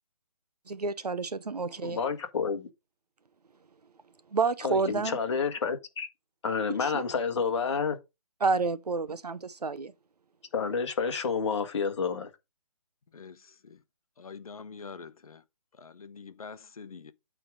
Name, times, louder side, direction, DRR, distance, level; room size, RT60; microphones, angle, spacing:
voice 1, 0.7-2.0 4.3-5.2 6.8-7.0 8.4-9.9, right 4 dB, 85° right, 1.0 m, -29 dB
voice 2, 1.8-2.7 4.6-6.1 6.4-8.0 10.5-12.3, left 5 dB, 50° left, 1.6 m, -29 dB
voice 3, 13.1-13.8 14.2-15.4 15.8-17.1, left 5 dB, 65° left, 1.0 m, -45 dB
8.9 x 3.7 x 4.9 m
figure-of-eight pair, 155°, 20 cm